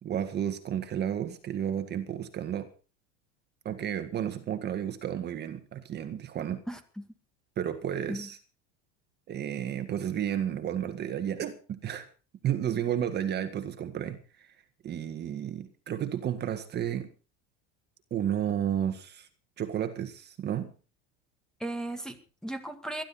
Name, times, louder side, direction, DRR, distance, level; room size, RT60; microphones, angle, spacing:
voice 1, 0.0-2.7 3.7-6.6 7.6-8.4 9.3-12.1 12.4-14.5 14.8-17.1 18.1-19.3 19.6-20.7, right 9 dB, 35° right, 8 dB, 1.8 m, -32 dB
voice 2, 6.7-7.1 8.1-8.3 21.6-23.0, right 1 dB, ahead, 7 dB, 2.0 m, -36 dB
21.0 x 12.5 x 4.2 m, 0.36 s
supercardioid pair, 135°, 30 cm